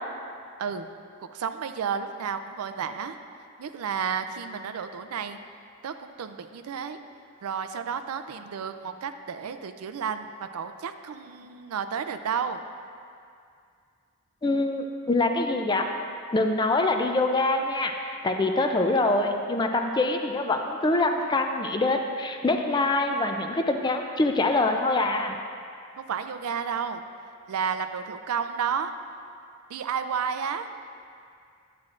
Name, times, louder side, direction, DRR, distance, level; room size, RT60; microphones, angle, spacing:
voice 1, 1.3-3.2 3.6-5.4 5.8-7.0 7.4-10.3 10.5-12.6 26.0-27.0 27.5-28.9 29.7-30.7, right 7 dB, 90° right, 9 dB, 0.4 m, -31 dB
voice 2, 14.4-15.9 16.3-25.4, left 2 dB, 20° left, 4 dB, 0.4 m, -24 dB
10.5 x 7.6 x 2.5 m, 2.3 s
head